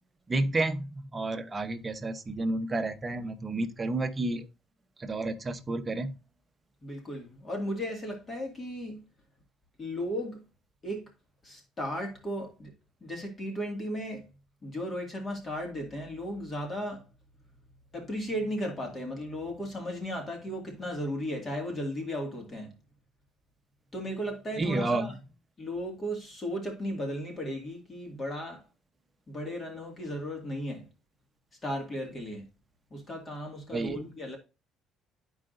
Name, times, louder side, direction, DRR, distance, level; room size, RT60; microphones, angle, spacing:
voice 1, 0.3-4.5 5.0-6.1 24.6-25.1 33.7-34.0, right 2 dB, 20° right, 0.9 m, -30 dB
voice 2, 6.8-9.0 9.8-10.4 10.8-11.0 11.4-12.7 13.0-14.3 14.6-17.1 17.9-22.7 23.9-25.2 25.6-28.6 29.3-30.9 31.6-32.4 32.9-34.4, equal, 30° left, 2.0 m, -35 dB
12.0 x 4.8 x 2.6 m
cardioid pair, 115°, 0 cm